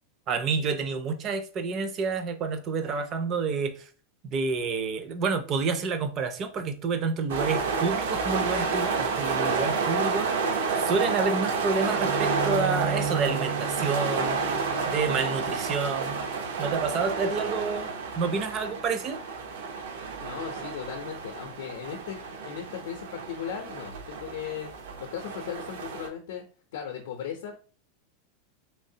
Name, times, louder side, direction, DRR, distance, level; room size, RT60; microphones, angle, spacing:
voice 1, 0.3-3.9 4.2-14.4 14.9-16.2 16.6-17.9 18.2-19.2, right 4 dB, 25° right, 0.4 m, -29 dB
sound 1, 7.3-26.1, right 5 dB, 85° right, 0.7 m, -30 dB
Bowed string instrument, 12.0-17.3, right 5 dB, 70° right, 1.0 m, -35 dB
voice 2, 20.2-24.7 25.0-26.4 26.7-27.6, left 8 dB, 70° left, 0.5 m, -37 dB
3.3 x 3.1 x 2.7 m
supercardioid pair, 180°, 0 cm